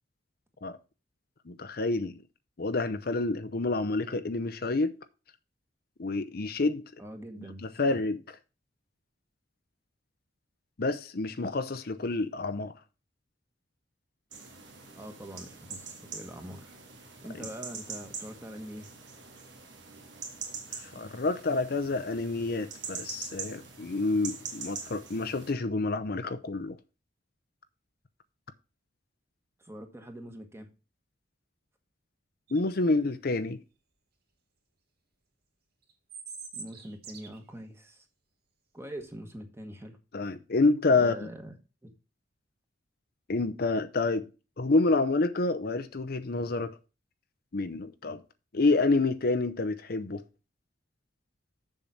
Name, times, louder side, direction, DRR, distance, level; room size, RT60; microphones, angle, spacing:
voice 1, 1.5-2.2 2.6-4.9 6.0-6.9 7.8-8.2 10.8-12.7 20.9-26.8 32.5-33.6 40.1-41.1 43.3-44.3 44.6-46.8 47.5-48.2 48.5-50.2, left 3 dB, 55° left, 0.7 m, -28 dB
voice 2, 7.0-8.0 14.9-18.9 29.6-30.7 36.5-38.1 38.7-40.0 40.9-41.9, equal, 15° right, 1.5 m, -44 dB
sound 1, 14.3-25.5, right 5 dB, 75° right, 2.1 m, -43 dB
sound 2, 32.5-32.8 35.9-37.4, right 5 dB, 60° right, 2.0 m, -44 dB
7.2 x 6.6 x 5.7 m
head